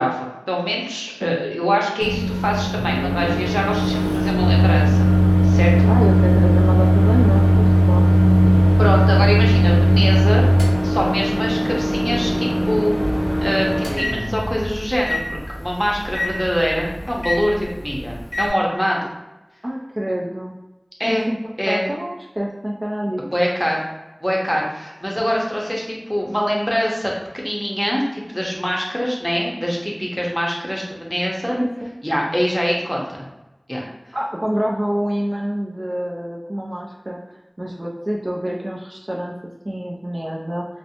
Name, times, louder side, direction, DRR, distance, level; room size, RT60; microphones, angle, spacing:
voice 1, 0.0-5.1 5.4-5.9 8.8-10.5 10.8-13.0 13.4-19.1 21.0-21.3 21.6-21.8 23.2-23.8 24.2-31.6 32.0-33.0 33.7-33.9, equal, 5° left, -2 dB, 0.7 m, -23 dB
Microwave oven, 2.0-18.5, equal, 60° left, 0.6 m, -17 dB
voice 2, 5.9-8.1 19.6-20.6 21.0-21.4 21.7-23.2 31.5-31.7 34.1-37.2 37.6-39.3 39.6-40.7, equal, 40° right, -3 dB, 0.4 m, -26 dB
2.5 x 2.1 x 2.8 m, 1.0 s
wide cardioid pair, 40°, 0 cm